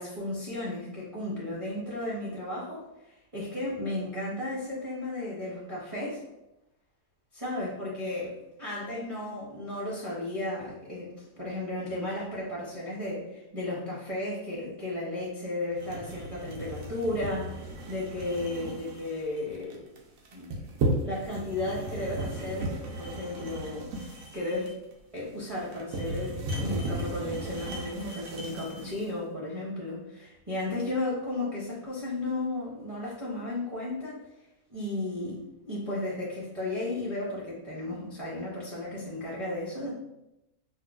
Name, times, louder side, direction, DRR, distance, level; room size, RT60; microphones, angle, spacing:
voice 1, 0.0-2.8 3.3-6.2 7.3-19.8 20.3-20.6 21.0-24.7 25.1-34.2 34.7-35.4 35.7-39.9, left 2 dB, 35° right, -7 dB, 0.6 m, -34 dB
sound 1, 15.8-29.1, right 1 dB, 70° right, 1.0 m, -35 dB
4.5 x 2.1 x 2.3 m, 0.91 s
omnidirectional pair, 1.5 m